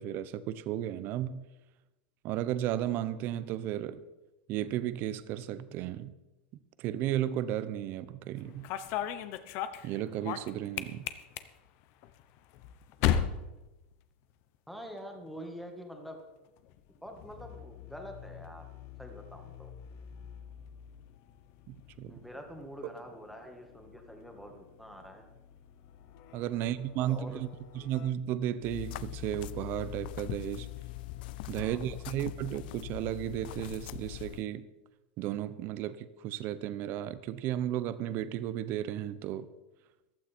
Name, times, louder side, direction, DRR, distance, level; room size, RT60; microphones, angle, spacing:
voice 1, 0.0-1.4 2.2-4.0 4.5-6.1 6.8-8.7 9.8-11.0 21.7-22.2 26.3-27.5 27.7-30.7 31.5-34.6 35.2-39.5, right 12 dB, 40° right, 15 dB, 0.7 m, -34 dB
sound 1, 8.4-14.6 14.8-15.4 16.4-28.1, left 10 dB, 45° left, 0.9 m, -39 dB
voice 2, 14.7-16.2 17.0-18.7 19.0-19.7 22.1-25.2 26.5-27.4 27.8-27.9 31.6-31.8, equal, ahead, 3 dB, 1.7 m, -46 dB
sound 2, 28.6-34.4, left 16 dB, 65° left, 0.4 m, -41 dB
15.0 x 12.5 x 4.4 m, 1.0 s
supercardioid pair, 155°, 6 cm